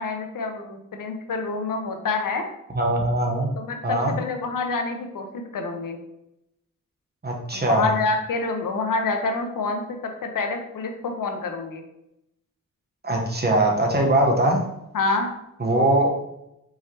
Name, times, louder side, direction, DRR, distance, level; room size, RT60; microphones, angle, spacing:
voice 1, 0.0-2.5 3.6-6.0 7.5-11.8 14.9-15.3, left 3 dB, 80° left, 4 dB, 0.6 m, -27 dB
voice 2, 2.7-3.5 3.8-4.2 7.2-7.9 13.0-14.6 15.6-16.1, right 1 dB, 30° right, 0 dB, 1.1 m, -21 dB
4.7 x 3.1 x 2.9 m, 0.83 s
cardioid pair, 65°, 32 cm